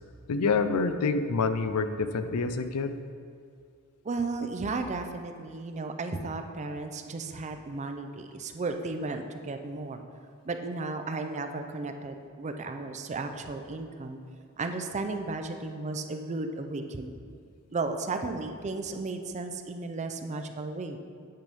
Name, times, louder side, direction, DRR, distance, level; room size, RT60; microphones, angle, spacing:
voice 1, 0.3-2.9, left 4 dB, 85° left, 10 dB, 0.4 m, -27 dB
voice 2, 4.0-10.0 10.4-14.2 14.6-17.2 17.7-21.0, right 3 dB, 30° right, 6 dB, 0.4 m, -34 dB
8.9 x 3.5 x 5.3 m, 2.3 s
head